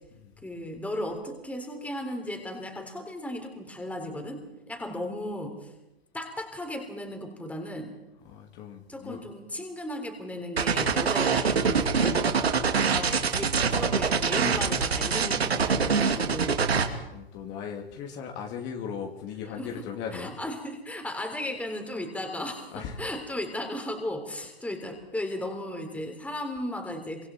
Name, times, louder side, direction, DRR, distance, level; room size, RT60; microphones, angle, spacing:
voice 1, 0.4-5.7 6.1-7.9 8.9-12.3 12.9-16.6 19.6-19.8 20.1-27.3, left 1 dB, 5° left, 4 dB, 3.9 m, -35 dB
voice 2, 8.2-9.3 15.7-16.1 16.8-20.4 22.7-23.0, left 7 dB, 35° left, 2 dB, 3.0 m, -38 dB
sound 1, 10.6-16.9, right 5 dB, 85° right, 2.7 m, -24 dB
26.5 x 25.0 x 4.6 m, 0.94 s
hypercardioid pair, 120°, 30 cm